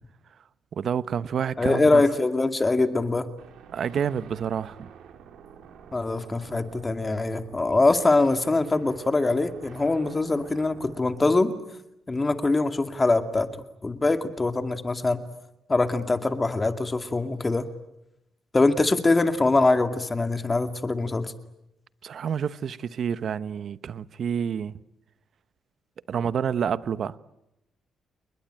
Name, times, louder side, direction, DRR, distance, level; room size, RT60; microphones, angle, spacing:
voice 1, 0.7-2.0 3.7-4.9 22.0-24.7 26.1-27.2, right 7 dB, 55° right, 1.0 m, -28 dB
voice 2, 1.6-3.3 5.9-11.5 12.1-13.5 13.8-15.2 15.7-17.6 18.5-21.3, left 3 dB, 20° left, 2.3 m, -23 dB
sound 1, 3.4-11.4, right 7 dB, 80° right, 3.9 m, -48 dB
30.0 x 21.5 x 9.0 m
cardioid pair, 90°, 0 cm